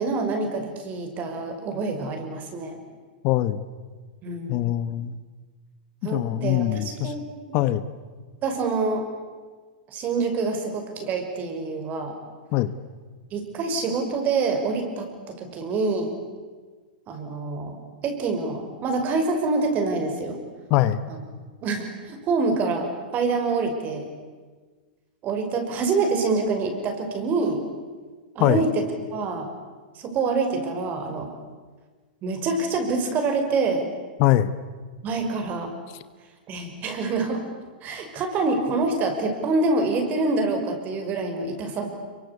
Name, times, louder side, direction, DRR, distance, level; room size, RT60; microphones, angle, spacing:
voice 1, 0.0-2.8 4.2-4.7 6.0-7.3 7.6-7.7 8.4-9.0 9.9-12.1 13.3-15.1 15.4-16.1 17.1-17.8 18.0-20.4 21.1-21.2 21.6-24.1 25.2-27.6 28.3-28.9 29.1-29.5 29.9-31.3 32.2-33.9 35.0-35.7 36.5-37.4 37.8-41.9, right 3 dB, 35° right, 5 dB, 5.8 m, -26 dB
voice 2, 3.2-3.6 4.5-5.2 6.1-7.1 7.5-7.8 12.5-12.7 20.7-21.0 28.4-28.6 34.2-34.5, left 14 dB, 45° left, 14 dB, 1.1 m, -22 dB
26.0 x 23.5 x 8.4 m, 1.4 s
hypercardioid pair, 125°, 5 cm